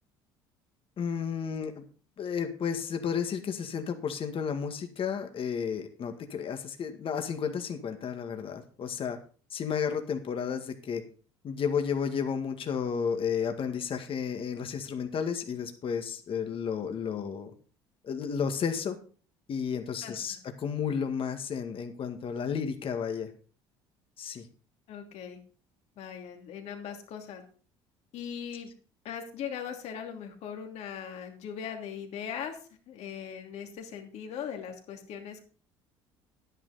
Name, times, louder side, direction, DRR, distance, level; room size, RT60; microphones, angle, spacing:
voice 1, 1.0-1.8 2.2-9.2 9.5-11.0 11.4-17.5 18.0-19.0 19.5-23.3 24.2-24.5, left 7 dB, 45° left, 6 dB, 1.9 m, -32 dB
voice 2, 24.9-25.4 26.0-27.4 28.1-28.7 29.0-32.6 32.9-35.4, left 8 dB, 65° left, 4 dB, 2.7 m, -39 dB
10.5 x 10.0 x 4.2 m, 0.40 s
supercardioid pair, 75°, 12 cm